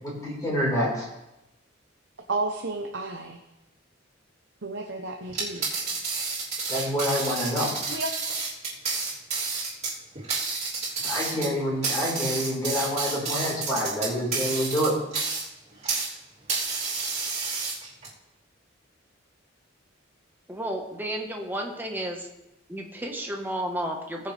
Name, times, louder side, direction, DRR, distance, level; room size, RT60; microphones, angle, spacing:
voice 1, 0.0-1.1 6.7-7.7 11.0-14.9, equal, 20° left, -5 dB, 4.8 m, -27 dB
voice 2, 2.3-3.4 4.6-5.7 7.9-8.1, right 2 dB, 65° right, 2 dB, 1.0 m, -32 dB
sound 1, 5.3-16.1 16.5-18.1, right 4 dB, 35° right, 3.2 m, -30 dB
voice 3, 20.5-22.3 22.7-24.3, right 1 dB, 10° right, 1 dB, 1.5 m, -32 dB
20.0 x 6.8 x 3.5 m, 0.93 s
head